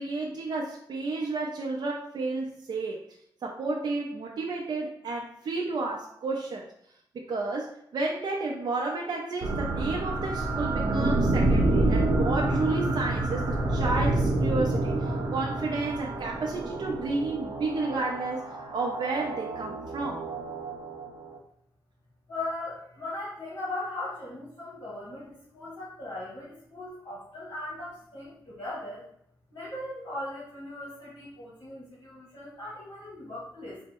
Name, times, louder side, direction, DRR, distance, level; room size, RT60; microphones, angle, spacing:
voice 1, 0.0-3.0 3.4-6.6 7.1-20.3, right 3 dB, 65° right, -1 dB, 0.5 m, -31 dB
sound 1, 9.4-21.4, right 2 dB, 90° right, 0.9 m, -28 dB
voice 2, 22.3-29.0 29.5-33.8, left 2 dB, 50° left, -7 dB, 1.6 m, -38 dB
4.0 x 2.1 x 4.5 m, 0.71 s
wide cardioid pair, 115°, 8 cm